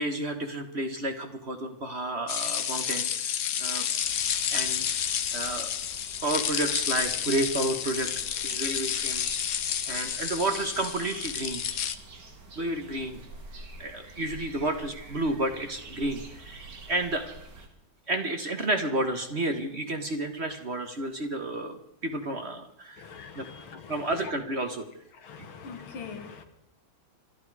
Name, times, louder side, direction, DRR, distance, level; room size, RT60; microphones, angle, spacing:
voice 1, 0.0-3.9 4.5-5.7 6.2-8.1 8.4-9.6 9.9-11.6 12.6-13.2 13.8-17.3 18.1-23.1 23.3-23.4 23.9-24.9, right 1 dB, 35° right, 6 dB, 1.3 m, -31 dB
sound 1, 2.3-11.9, left 9 dB, 60° left, 1.0 m, -30 dB
sound 2, 4.0-17.7, right 2 dB, 55° right, 2.6 m, -47 dB
voice 2, 23.0-24.1 25.1-26.4, left 6 dB, 90° left, 7 dB, 2.4 m, -43 dB
26.0 x 11.5 x 4.8 m, 0.79 s
omnidirectional pair, 2.2 m